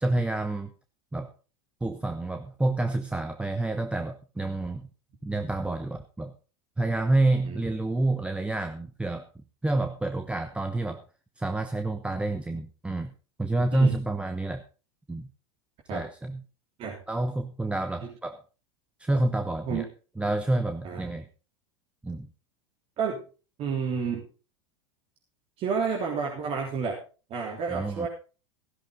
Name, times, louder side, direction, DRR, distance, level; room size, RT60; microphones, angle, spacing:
voice 1, 0.0-0.7 1.1-1.3 1.8-4.9 5.2-6.3 6.8-11.0 11.4-13.1 13.4-14.6 15.1-15.3 15.9-16.4 17.1-18.4 19.0-19.9 20.2-21.2 22.0-22.3 27.7-28.1, right 2 dB, 10° right, 8 dB, 1.0 m, -28 dB
voice 2, 23.6-24.3 25.6-27.0 27.3-28.1, right 5 dB, 40° right, -1 dB, 3.5 m, -30 dB
15.0 x 11.5 x 3.9 m, 0.34 s
hypercardioid pair, 105°, 15 cm